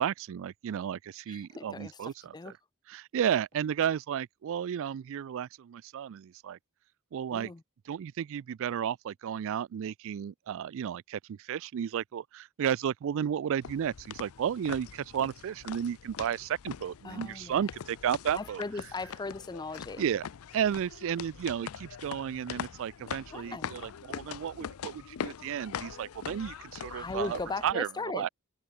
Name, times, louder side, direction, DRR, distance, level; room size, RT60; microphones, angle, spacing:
voice 1, 0.0-2.5 2.9-6.6 7.1-7.5 7.9-18.6 20.0-20.2 20.5-27.9 28.1-28.3, right 9 dB, 60° right, 0.3 m, -33 dB
voice 2, 1.3-2.5 7.3-7.6 17.0-17.7 18.3-20.0 23.3-23.7 26.9-28.3, left 3 dB, 20° left, 0.5 m, -38 dB
sound 1, 13.6-27.7, left 7 dB, 70° left, 0.5 m, -42 dB
head